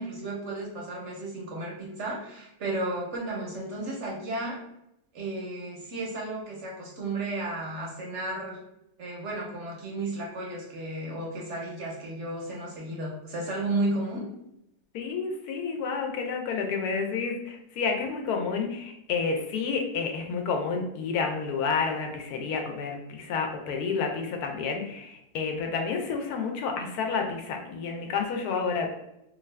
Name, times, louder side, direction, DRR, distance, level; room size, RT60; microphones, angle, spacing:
voice 1, 0.0-4.6 5.1-8.6 9.0-14.3, right 2 dB, 65° right, -2 dB, 0.8 m, -33 dB
voice 2, 14.9-28.9, left 5 dB, 80° left, 3 dB, 1.1 m, -30 dB
2.6 x 2.4 x 3.1 m, 0.83 s
omnidirectional pair, 1.6 m